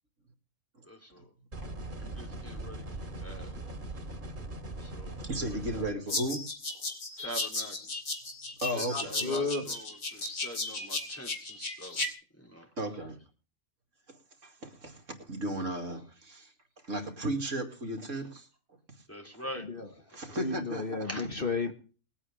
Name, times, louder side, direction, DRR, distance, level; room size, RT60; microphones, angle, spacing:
voice 1, 0.8-1.3 2.0-3.6 4.8-5.2 5.5-5.9 7.2-8.1 9.1-12.0 12.4-12.7 19.1-19.7 20.1-20.2 21.0-21.3, equal, 10° left, 2 dB, 3.7 m, -44 dB
sound 1, 1.5-5.9, right 2 dB, 35° right, 3.4 m, -40 dB
voice 2, 5.2-6.4 8.6-9.4 12.8-13.2 14.1-16.5 16.8-18.5 20.1-20.9, right 1 dB, 65° right, 4 dB, 2.7 m, -35 dB
sound 2, 6.1-12.1, left 2 dB, 60° left, 2.8 m, -35 dB
voice 3, 8.7-9.7 19.6-19.9 20.3-21.7, left 3 dB, 40° left, 5 dB, 1.5 m, -33 dB
20.5 x 8.7 x 5.0 m, 0.37 s
omnidirectional pair, 1.4 m